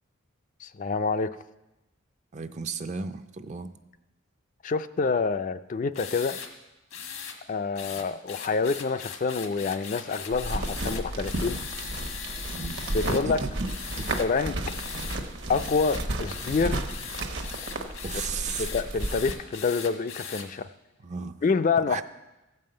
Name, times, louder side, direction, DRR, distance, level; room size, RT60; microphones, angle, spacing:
voice 1, 0.6-1.3 4.6-6.4 7.5-11.6 12.9-13.4 14.2-14.5 15.5-16.9 18.6-20.7 21.4-22.0, left 4 dB, 40° left, 10 dB, 0.4 m, -27 dB
voice 2, 2.3-3.7 7.9-8.0 12.5-12.8 13.1-13.5 14.0-14.2 18.0-18.7 21.0-21.4 21.9-22.0, right 5 dB, 35° right, 10 dB, 0.5 m, -34 dB
sound 1, 5.9-6.5 6.9-7.4 7.8-13.2 13.6-14.3 14.6-15.2 15.5-20.5, left 7 dB, 90° left, 1.5 m, -39 dB
sound 2, 10.3-19.3, right 1 dB, 60° right, 1.1 m, -33 dB
15.0 x 5.5 x 7.7 m, 1.0 s
head